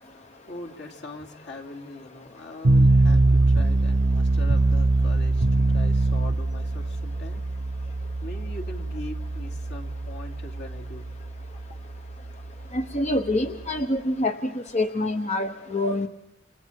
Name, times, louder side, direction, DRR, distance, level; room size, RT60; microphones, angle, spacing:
voice 1, 0.0-7.4 8.2-11.1, left 2 dB, 55° left, 0 dB, 2.8 m, -41 dB
sound 1, 2.6-13.8, right 2 dB, 60° right, 0.8 m, -23 dB
voice 2, 12.7-16.1, left 1 dB, 35° left, 6 dB, 0.9 m, -26 dB
29.0 x 28.5 x 4.6 m, 0.82 s
head